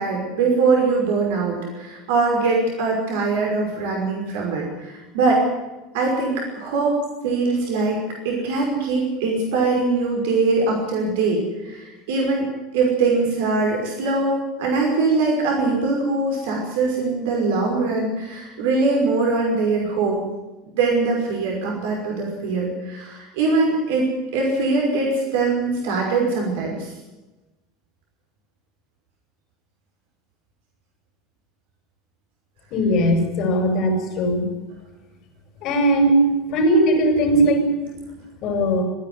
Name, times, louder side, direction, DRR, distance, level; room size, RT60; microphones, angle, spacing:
voice 1, 0.0-5.4 5.9-6.9 7.2-8.0 8.2-20.2 20.8-26.9, right 3 dB, 65° right, -1 dB, 5.6 m, -22 dB
voice 2, 32.7-34.4 35.6-37.7 38.4-38.8, right 1 dB, 50° left, 4 dB, 5.9 m, -19 dB
27.5 x 10.5 x 9.8 m, 1.1 s
figure-of-eight pair, 75°, 0 cm